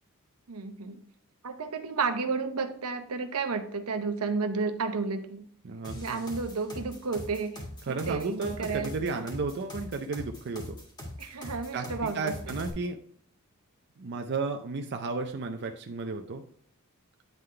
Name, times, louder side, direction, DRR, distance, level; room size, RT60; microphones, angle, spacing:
voice 1, 0.5-1.0 1.4-5.5 5.9-9.2 11.2-12.5, right 4 dB, 85° right, 8 dB, 0.8 m, -32 dB
voice 2, 5.6-6.3 7.8-10.8 11.7-13.0 14.0-16.4, right 4 dB, 50° right, 4 dB, 0.5 m, -33 dB
sound 1, 5.8-12.7, left 1 dB, 20° left, 1.7 m, -41 dB
9.1 x 3.8 x 3.3 m, 0.63 s
head